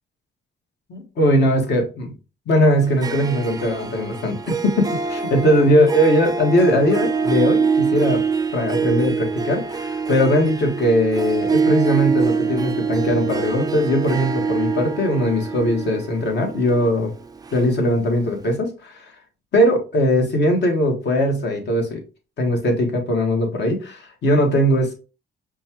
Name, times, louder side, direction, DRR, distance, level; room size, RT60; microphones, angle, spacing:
voice 1, 0.9-2.1 2.5-8.2 8.5-17.1 17.5-19.1 19.5-22.0 22.4-24.9, equal, 60° left, 3 dB, 1.4 m, -20 dB
Harp, 2.8-18.2, right 5 dB, 20° right, 0.3 m, -24 dB
5.3 x 2.4 x 2.9 m, 0.32 s
cardioid pair, 90°, 20 cm